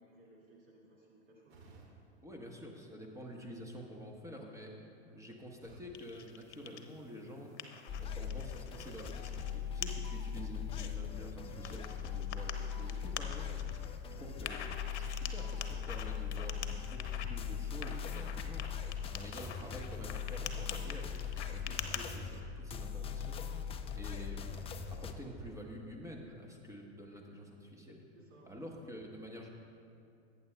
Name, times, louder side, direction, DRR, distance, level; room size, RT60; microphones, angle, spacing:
voice 1, 0.0-1.6 14.1-14.4 28.1-28.6, right 1 dB, 35° right, -4 dB, 2.2 m, -61 dB
sound 1, 1.5-3.5 5.6-7.3 9.3-10.9, right 3 dB, 55° right, 2.0 m, -62 dB
voice 2, 2.2-4.8 5.0-7.5 8.0-13.5 14.1-18.6 19.1-23.4 23.7-24.6 24.9-28.1 28.4-29.5, equal, 10° right, 0 dB, 1.2 m, -48 dB
sound 2, 5.9-6.9 7.3-9.5 9.8-9.9 10.4-10.9 11.7-13.9 14.4-17.3 17.8-22.0, left 9 dB, 75° left, 0.8 m, -44 dB
sound 3, 7.9-25.1, left 7 dB, 15° left, 0.4 m, -40 dB
18.0 x 8.8 x 2.3 m, 2.5 s
hypercardioid pair, 95°, 34 cm